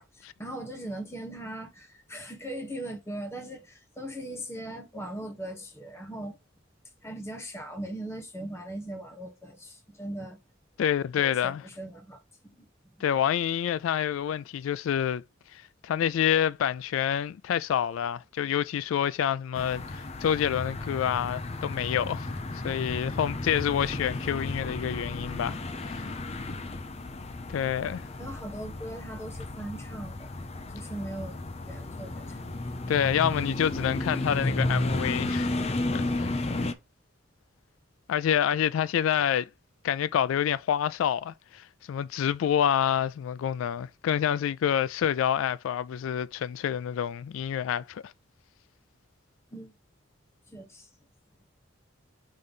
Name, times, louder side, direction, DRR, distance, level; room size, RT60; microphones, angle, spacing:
voice 1, 0.0-6.4 7.0-10.4 11.2-12.7 26.5-26.6 28.2-30.3 30.7-32.4 49.5-49.7 50.5-50.9, right 1 dB, 15° left, 1.3 m, -39 dB
voice 2, 10.8-11.6 13.0-15.2 15.5-22.3 22.6-26.1 27.5-28.1 32.9-35.5 35.9-36.3 38.1-39.5 39.8-48.1, left 9 dB, 85° left, 0.3 m, -27 dB
sound 1, 19.5-36.7, left 2 dB, 30° left, 0.6 m, -33 dB
5.5 x 3.2 x 5.5 m
head